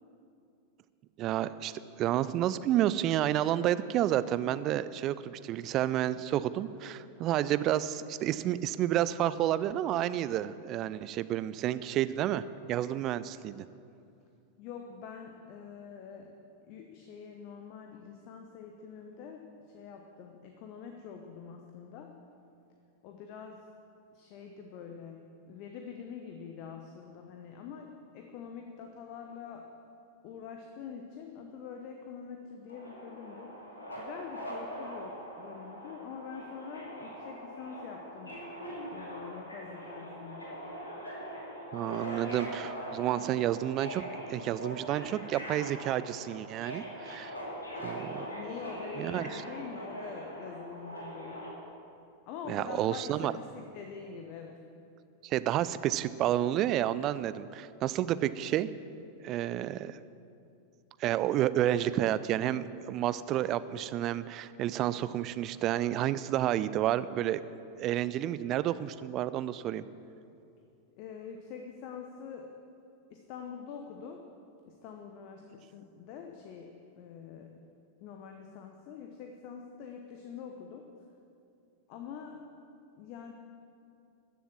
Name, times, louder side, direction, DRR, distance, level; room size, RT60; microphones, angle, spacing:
voice 1, 1.2-1.7 2.0-13.7 41.7-44.0 44.3-47.3 47.8-48.3 49.0-49.4 52.5-53.3 55.2-58.7 59.2-60.0 61.0-67.4 67.8-69.8, right 12 dB, 35° right, 15 dB, 0.4 m, -30 dB
voice 2, 14.6-16.3 16.6-22.1 23.0-23.6 24.1-25.2 25.5-29.7 30.2-33.5 33.9-38.4 38.9-40.4 48.3-51.5 52.3-54.6 70.9-72.5 73.1-74.2 74.6-77.6 78.0-80.9 81.9-82.4 83.0-83.3, left 6 dB, 45° left, 4 dB, 0.9 m, -45 dB
Subway metro underground, 32.7-51.5, equal, 75° left, 2.6 m, -42 dB
14.0 x 7.0 x 7.5 m, 2.6 s
figure-of-eight pair, 90°, 0 cm